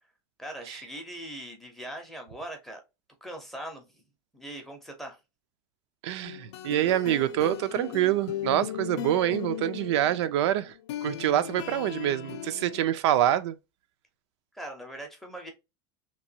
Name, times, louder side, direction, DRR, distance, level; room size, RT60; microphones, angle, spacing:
voice 1, 0.4-2.8 3.2-4.0 4.3-5.2 14.5-15.5, right 1 dB, ahead, 0.5 m, -41 dB
voice 2, 6.0-10.7 11.0-13.5, right 12 dB, 85° right, 0.4 m, -26 dB
sound 1, 6.2-12.8, left 11 dB, 90° left, 0.4 m, -37 dB
2.9 x 2.2 x 2.6 m
supercardioid pair, 165°, 14 cm